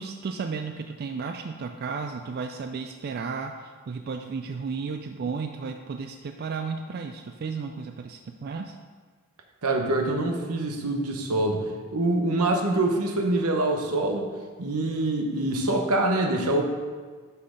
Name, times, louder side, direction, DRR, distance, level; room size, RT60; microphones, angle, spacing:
voice 1, 0.0-8.8, right 5 dB, 45° right, 5 dB, 0.3 m, -33 dB
voice 2, 9.6-11.7 11.9-14.2 14.6-16.6, right 2 dB, 85° right, 3 dB, 1.0 m, -25 dB
6.1 x 5.6 x 5.0 m, 1.5 s
head